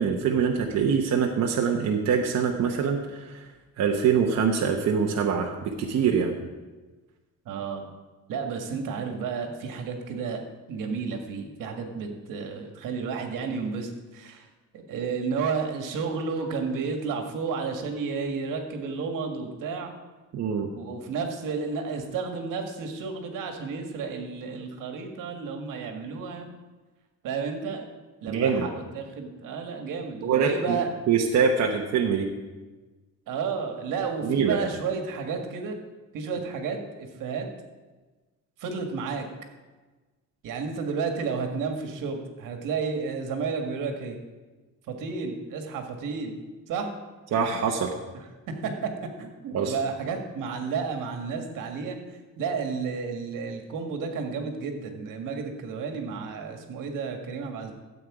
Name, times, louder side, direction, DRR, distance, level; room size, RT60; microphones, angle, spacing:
voice 1, 0.0-3.4 3.8-6.3 20.3-20.7 28.3-28.7 30.2-30.8 31.1-32.3 34.2-34.6 47.3-47.9 49.5-49.7, right 6 dB, 55° right, 1 dB, 1.0 m, -24 dB
voice 2, 7.5-7.9 8.3-10.4 10.7-14.5 14.7-19.9 20.7-26.5 27.2-27.9 28.2-30.9 33.3-35.8 36.1-37.5 38.6-39.3 40.4-44.2 44.9-46.4 46.7-46.9 48.5-52.0 52.4-57.7, right 5 dB, 80° right, 4 dB, 1.7 m, -32 dB
13.5 x 8.2 x 4.9 m, 1.3 s
cardioid pair, 165°, 32 cm